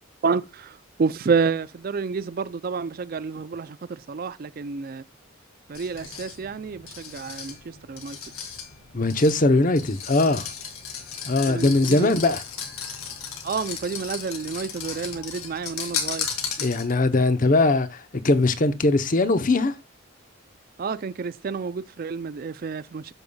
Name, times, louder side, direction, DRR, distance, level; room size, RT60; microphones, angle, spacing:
voice 1, 1.0-5.0 5.7-7.5 7.9-8.2 11.5-12.1 13.4-16.3 20.8-23.1, right 5 dB, 45° right, 0.3 m, -29 dB
sound 1, 5.7-17.1, left 7 dB, 90° left, 1.9 m, -35 dB
voice 2, 8.9-10.5 11.3-12.4 16.6-19.7, left 2 dB, 40° left, 0.7 m, -21 dB
13.5 x 5.4 x 2.3 m
head